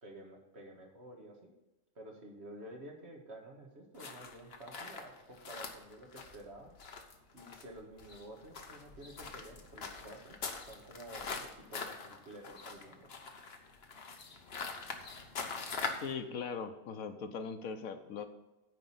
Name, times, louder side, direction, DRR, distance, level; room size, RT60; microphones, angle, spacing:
voice 1, 0.0-1.5 2.0-6.7 7.3-10.4 10.7-13.2, right 1 dB, 50° right, 0 dB, 2.0 m, -51 dB
sound 1, 4.0-16.1, left 4 dB, 50° left, 1.2 m, -43 dB
voice 2, 16.0-18.3, left 5 dB, 90° left, 8 dB, 1.3 m, -40 dB
9.5 x 5.2 x 7.2 m, 1.0 s
omnidirectional pair, 1.4 m